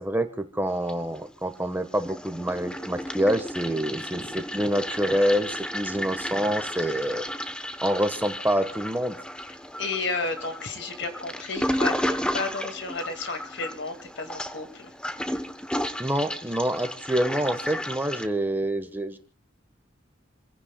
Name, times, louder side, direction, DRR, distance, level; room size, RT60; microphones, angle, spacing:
voice 1, 0.0-7.3 7.8-9.2 16.0-19.2, equal, 10° right, 8 dB, 1.2 m, -26 dB
Toilet flush, 0.7-1.5 1.8-18.3, equal, 5° left, 0.9 m, -33 dB
voice 2, 9.8-14.9, left 3 dB, 65° left, 7 dB, 2.2 m, -32 dB
29.0 x 16.0 x 2.3 m, 0.36 s
head